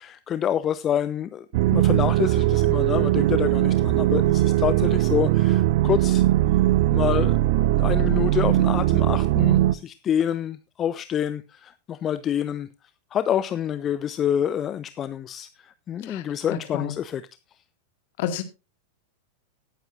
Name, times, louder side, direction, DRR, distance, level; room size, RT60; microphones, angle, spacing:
voice 1, 0.0-6.3 6.9-7.4 7.8-12.7 13.1-17.2, left 9 dB, 25° left, 0.5 m, -27 dB
sound 1, 1.5-9.7, right 14 dB, 50° right, 0.5 m, -20 dB
voice 2, 16.0-17.0 18.2-18.4, left 10 dB, 50° left, 1.7 m, -31 dB
17.5 x 9.1 x 2.6 m
figure-of-eight pair, 90°, 0 cm